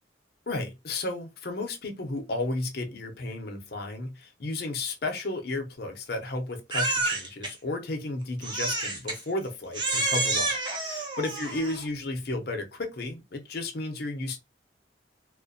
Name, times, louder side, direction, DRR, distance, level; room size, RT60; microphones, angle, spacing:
voice 1, 0.5-14.4, left 2 dB, 55° left, 0.6 m, -33 dB
Crying sobbing, 6.7-7.5 8.4-9.2 9.7-11.9, right 2 dB, 25° right, 0.6 m, -29 dB
2.4 x 2.1 x 2.5 m
head